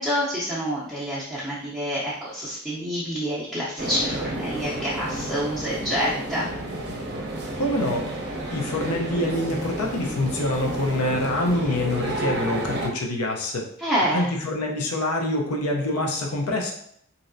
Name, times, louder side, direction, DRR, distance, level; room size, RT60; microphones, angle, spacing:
voice 1, 0.0-6.5 13.8-14.3, equal, ahead, -10 dB, 0.5 m, -27 dB
sound 1, 3.8-12.9, right 1 dB, 50° right, 0.6 m, -31 dB
voice 2, 7.6-8.1 8.5-13.6 14.1-16.7, left 1 dB, 90° left, 1 dB, 0.6 m, -25 dB
3.1 x 2.7 x 2.6 m, 0.68 s
head